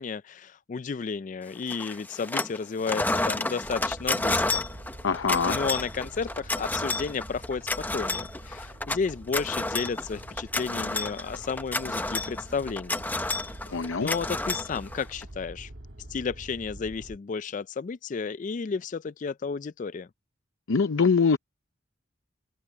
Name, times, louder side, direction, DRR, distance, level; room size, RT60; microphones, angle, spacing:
voice 1, 0.0-4.7 5.5-13.0 14.0-15.7 16.1-20.1, left 5 dB, 40° left, 0.3 m, -32 dB
sound 1, 1.7-2.6 2.8-15.2, left 2 dB, 10° left, 0.7 m, -30 dB
sound 2, 3.6-17.2, right 1 dB, 65° right, 1.5 m, -45 dB
voice 2, 5.0-5.6 13.7-14.1 20.7-21.4, left 5 dB, 75° left, 0.6 m, -23 dB
head